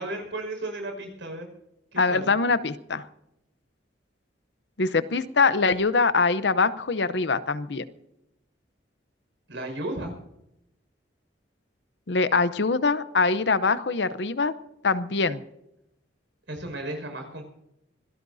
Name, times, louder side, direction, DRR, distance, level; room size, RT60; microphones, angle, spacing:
voice 1, 0.0-1.5 1.9-2.3 9.5-10.1 16.5-17.4, right 1 dB, 80° right, 4 dB, 5.5 m, -34 dB
voice 2, 2.0-3.0 4.8-7.8 12.1-14.5 14.8-15.4, left 4 dB, 65° left, 13 dB, 0.8 m, -23 dB
25.0 x 17.5 x 2.7 m, 0.84 s
head